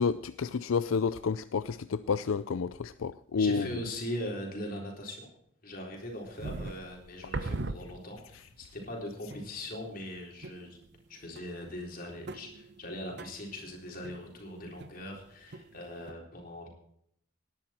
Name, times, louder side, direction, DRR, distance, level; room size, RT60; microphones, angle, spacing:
voice 1, 0.0-3.7, left 5 dB, 80° left, 0.4 m, -30 dB
voice 2, 3.4-5.3 5.6-10.8 11.1-16.7, left 1 dB, 45° left, 3.9 m, -40 dB
sound 1, 5.9-8.4 8.8-8.9 9.3-9.8 10.4-11.1 11.4-15.2 15.5-16.1, right 2 dB, 55° right, 0.8 m, -41 dB
18.5 x 10.5 x 4.4 m
head